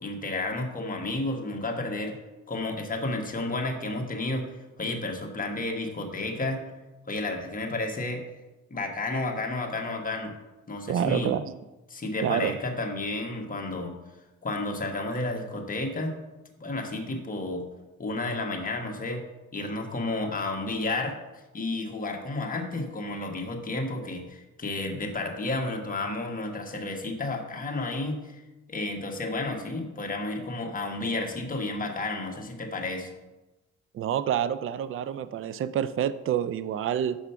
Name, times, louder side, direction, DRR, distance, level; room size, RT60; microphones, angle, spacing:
voice 1, 0.0-2.1 2.5-4.4 4.8-6.6 7.1-8.2 8.7-10.3 10.7-11.3 11.9-13.9 14.4-16.1 16.6-17.6 18.0-19.2 19.5-21.2 21.5-28.4 28.7-33.1, left 2 dB, 30° left, 2 dB, 1.4 m, -31 dB
voice 2, 10.9-11.5 12.2-12.6 33.9-37.2, right 9 dB, 45° right, 14 dB, 0.4 m, -28 dB
6.1 x 5.7 x 5.6 m, 1.1 s
cardioid pair, 90°, 30 cm